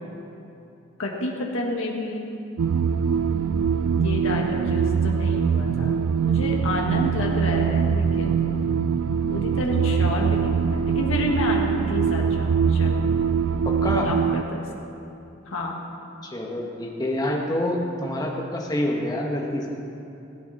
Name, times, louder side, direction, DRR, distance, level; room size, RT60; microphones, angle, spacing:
voice 1, 1.0-2.4 3.9-8.5 9.3-13.2 14.0-14.9 15.5-15.8, left 1 dB, 70° left, -1 dB, 1.7 m, -30 dB
sound 1, 2.6-14.4, right 6 dB, 85° right, 0.3 m, -23 dB
voice 2, 13.6-14.1 16.2-19.8, left 1 dB, 20° left, -1 dB, 1.4 m, -27 dB
19.0 x 8.5 x 4.2 m, 2.8 s
head